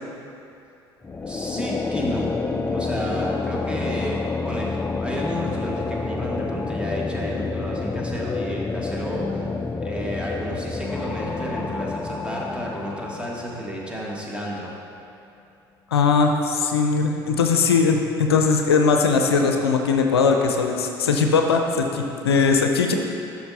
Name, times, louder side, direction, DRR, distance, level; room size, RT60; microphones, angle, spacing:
sound 1, 1.0-14.2, left 3 dB, 15° left, 0.5 m, -28 dB
voice 1, 1.3-2.3 2.7-9.5 9.8-14.8, equal, 10° right, -3 dB, 1.6 m, -32 dB
voice 2, 15.9-22.9, left 5 dB, 80° left, 3 dB, 0.5 m, -20 dB
12.0 x 6.0 x 2.8 m, 2.7 s
figure-of-eight pair, 60°, 13 cm